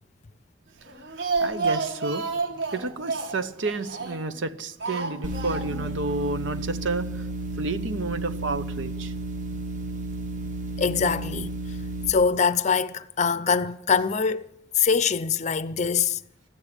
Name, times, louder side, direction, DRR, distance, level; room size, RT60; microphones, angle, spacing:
Speech, 0.9-4.4 4.8-6.0 6.2-6.3 6.6-6.7, right 4 dB, 65° right, 1.8 m, -30 dB
voice 1, 1.4-2.2 2.7-7.2 7.6-9.1, right 3 dB, 85° right, 0.9 m, -30 dB
sound 1, 5.2-12.1, right 2 dB, 40° right, 0.9 m, -32 dB
voice 2, 10.8-11.5 12.1-16.2, left 6 dB, 40° left, 0.5 m, -23 dB
13.0 x 8.9 x 9.8 m
head